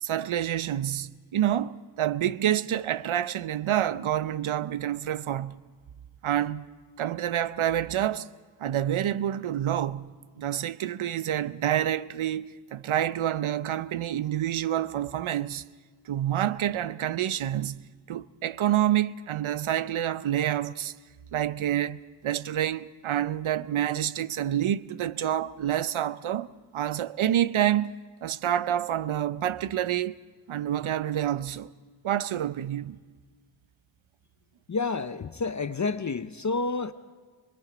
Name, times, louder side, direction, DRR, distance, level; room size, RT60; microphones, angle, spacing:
voice 1, 0.0-5.6 6.2-6.7 7.0-8.3 8.6-15.6 16.1-20.9 21.3-26.5 26.7-30.2 30.5-31.7 32.0-33.0, right 11 dB, 80° right, 0.7 m, -28 dB
voice 2, 34.7-36.9, left 4 dB, 35° left, 0.7 m, -29 dB
25.5 x 21.5 x 5.0 m
wide cardioid pair, 90°, 48 cm